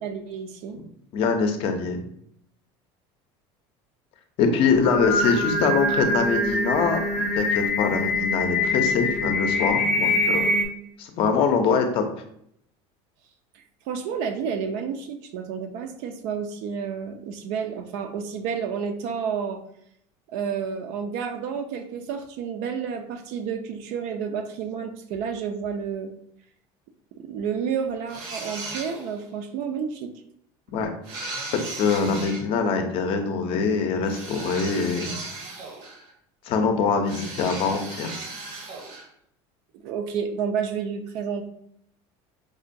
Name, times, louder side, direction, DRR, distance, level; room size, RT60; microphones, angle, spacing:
voice 1, 0.0-0.8 13.5-19.6 20.3-26.1 27.2-30.1 39.8-41.5, right 6 dB, 60° right, 6 dB, 0.4 m, -30 dB
voice 2, 1.1-2.0 4.4-10.5 11.0-12.0 30.7-30.9 31.2-31.3 31.8-35.2 36.4-38.1, left 5 dB, 45° left, 5 dB, 0.5 m, -24 dB
Singing, 4.7-10.7, left 2 dB, ahead, 0.6 m, -24 dB
sound 1, 28.1-29.2 31.0-32.4 34.0-36.1 37.1-39.1, right 3 dB, 75° right, 0.9 m, -36 dB
4.8 x 2.2 x 2.6 m, 0.71 s
cardioid pair, 160°, 14 cm